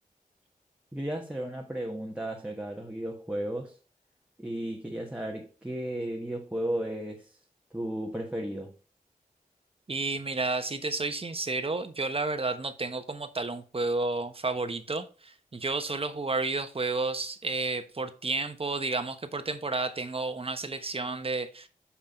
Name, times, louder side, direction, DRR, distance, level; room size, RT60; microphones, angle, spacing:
voice 1, 0.9-3.7 4.4-7.3 7.7-8.7, right 1 dB, 10° right, 1.4 m, -34 dB
voice 2, 9.9-21.7, right 3 dB, 40° right, 1.1 m, -31 dB
7.9 x 5.7 x 4.3 m
wide cardioid pair, 105°, 15 cm